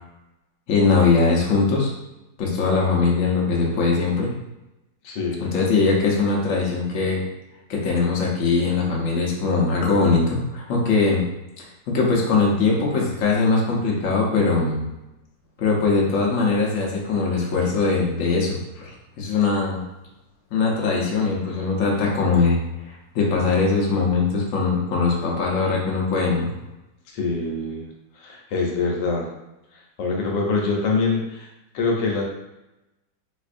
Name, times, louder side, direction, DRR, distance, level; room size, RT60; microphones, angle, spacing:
voice 1, 0.7-1.9 2.4-4.3 5.4-7.2 7.7-11.2 11.9-14.8 15.6-18.9 19.2-19.8 20.5-22.6 23.1-26.5, left 4 dB, 55° left, -2 dB, 1.0 m, -21 dB
voice 2, 5.0-5.6 27.1-27.9 28.2-29.3 30.0-32.2, left 4 dB, 85° left, -1 dB, 1.4 m, -25 dB
4.3 x 2.5 x 2.5 m, 0.94 s
omnidirectional pair, 1.9 m